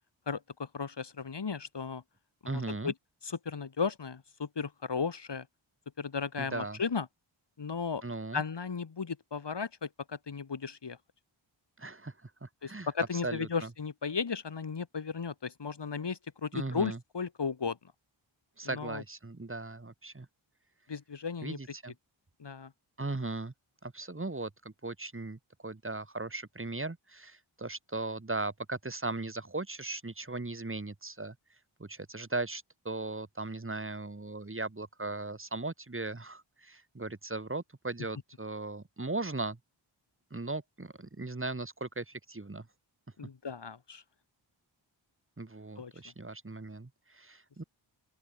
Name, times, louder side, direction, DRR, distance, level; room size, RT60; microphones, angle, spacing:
voice 1, 0.3-2.0 2.4-2.9 3.2-5.5 6.0-7.1 7.6-8.0 8.3-11.0 12.6-17.8 18.6-19.0 20.9-21.6 22.4-22.7 43.2-44.0 45.8-45.9, left 5 dB, 60° left, 3.9 m, -35 dB
voice 2, 2.4-2.9 6.4-6.8 8.0-8.4 11.8-13.7 16.5-17.0 18.6-20.3 21.4-21.9 23.0-23.5 23.8-31.4 31.8-39.6 40.3-42.7 45.4-47.6, right 2 dB, 25° right, 4.3 m, -38 dB
open air
wide cardioid pair, 75°, 47 cm